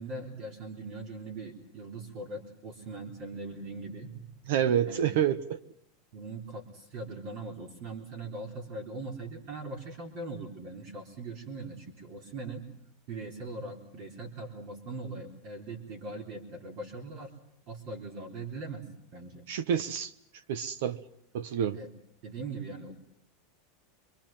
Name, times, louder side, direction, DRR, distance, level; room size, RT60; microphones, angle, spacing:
voice 1, 0.0-5.1 6.1-12.7 13.1-17.3 17.7-18.9 19.1-19.5 21.7-21.9 22.2-22.9, right 3 dB, 50° right, 3 dB, 3.9 m, -41 dB
voice 2, 4.5-5.6 19.5-20.1 20.5-21.0 21.3-21.8, right 9 dB, 70° right, 16 dB, 1.2 m, -28 dB
27.0 x 23.5 x 7.5 m, 0.71 s
supercardioid pair, 155°, 0 cm